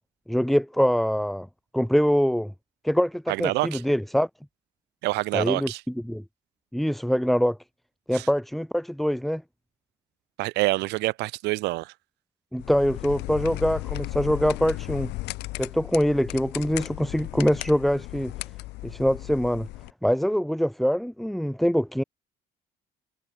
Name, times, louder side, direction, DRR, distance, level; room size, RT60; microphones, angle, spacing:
voice 1, 0.3-1.5 1.7-2.5 2.8-4.3 5.3-6.2 6.7-7.6 8.1-9.4 12.5-15.1 15.6-18.3 18.8-19.7 20.0-22.0, equal, ahead, 0.6 m, -24 dB
voice 2, 3.3-3.8 5.0-5.8 8.1-8.3 10.4-11.9, right 20 dB, 85° right, 0.9 m, -26 dB
sound 1, 12.6-19.9, left 20 dB, 90° left, 3.2 m, -35 dB
cardioid pair, 110°, 17 cm